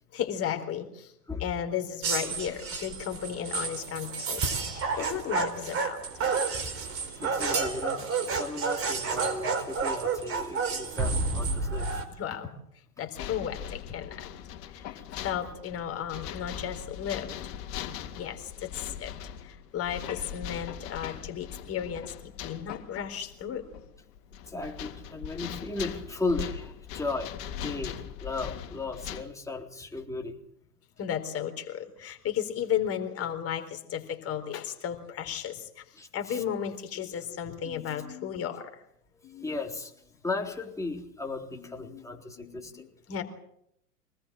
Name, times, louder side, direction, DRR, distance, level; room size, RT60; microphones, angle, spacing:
voice 1, 0.1-1.1 1.4-6.0 12.2-12.5 13.0-14.3 14.7-17.5 18.2-19.2 19.4-23.6 31.0-35.8 36.1-38.8 39.2-39.5 41.5-42.1 42.4-43.2, left 9 dB, 30° left, 5 dB, 4.1 m, -34 dB
sound 1, 2.0-12.0, right 4 dB, 30° right, 4.4 m, -30 dB
voice 2, 7.1-11.9 14.7-15.1 21.0-21.1 24.5-27.3 27.6-30.4 36.0-36.4 39.4-39.9 40.2-42.9, left 3 dB, 5° left, 1 dB, 3.8 m, -36 dB
sound 2, 13.1-29.2, left 9 dB, 50° left, 3.4 m, -40 dB
25.5 x 19.5 x 7.6 m, 0.75 s
hypercardioid pair, 110°, 47 cm